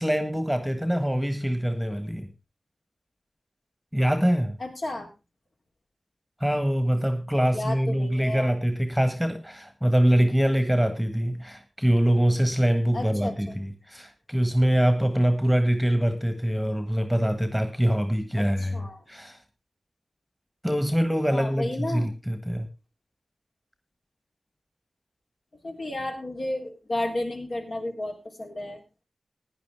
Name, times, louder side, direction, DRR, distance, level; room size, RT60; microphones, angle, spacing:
voice 1, 0.0-2.3 3.9-4.6 6.4-19.4 20.6-22.7, equal, ahead, 9 dB, 1.5 m, -24 dB
voice 2, 4.6-5.1 7.5-8.5 12.9-13.3 18.4-19.0 21.3-22.1 25.6-28.8, left 1 dB, 60° left, 1 dB, 3.5 m, -32 dB
17.0 x 10.5 x 3.5 m, 0.25 s
wide cardioid pair, 110°, 0 cm